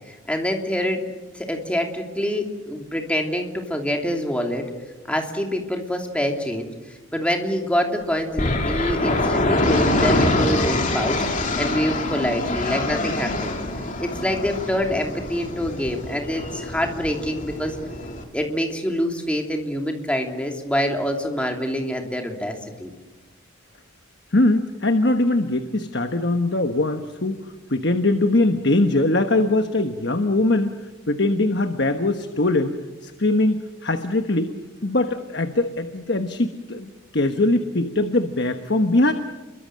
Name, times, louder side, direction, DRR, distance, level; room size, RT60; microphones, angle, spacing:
voice 1, 0.3-1.0 1.3-4.6 5.1-6.7 7.1-13.5 14.0-17.8 18.3-22.5 22.8-22.9, equal, 5° left, 2 dB, 2.9 m, -25 dB
sound 1, 8.4-18.2, left 2 dB, 40° left, 3.2 m, -25 dB
voice 2, 24.3-30.8 31.1-34.6 34.8-39.1, left 2 dB, 55° left, 7 dB, 1.3 m, -21 dB
29.5 x 23.0 x 7.7 m, 1.2 s
head